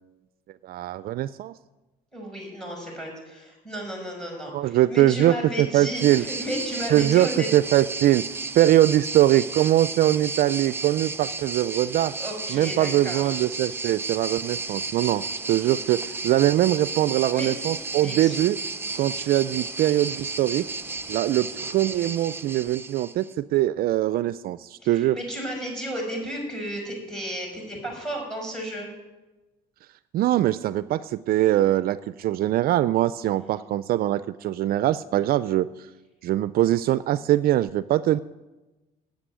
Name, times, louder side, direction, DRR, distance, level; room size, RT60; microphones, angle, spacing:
voice 1, 0.6-1.5 4.5-6.2 6.9-8.3 8.5-12.1 12.5-18.6 18.9-20.7 21.1-25.2 30.1-35.7 36.2-38.2, right 14 dB, 65° right, 15 dB, 0.4 m, -22 dB
voice 2, 2.1-7.5 11.9-13.5 17.3-17.5 18.0-18.4 24.8-28.9, equal, 5° left, 0 dB, 5.8 m, -33 dB
sound 1, 5.9-23.3, right 3 dB, 15° right, 0.7 m, -33 dB
9.8 x 8.5 x 9.6 m, 1.1 s
cardioid pair, 110°, 17 cm